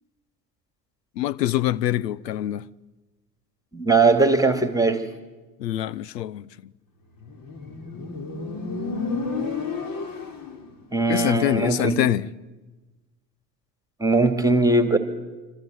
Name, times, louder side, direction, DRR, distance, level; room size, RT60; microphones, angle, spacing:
voice 1, 1.2-2.6 5.6-6.5 11.1-12.3, left 13 dB, 75° left, 0.8 m, -24 dB
voice 2, 3.7-5.0 10.9-12.0 14.0-15.0, right 3 dB, 5° right, 2.4 m, -20 dB
Motorcycle, 7.2-10.7, left 4 dB, 40° left, 4.0 m, -31 dB
26.5 x 26.0 x 8.0 m
figure-of-eight pair, 70°, 50 cm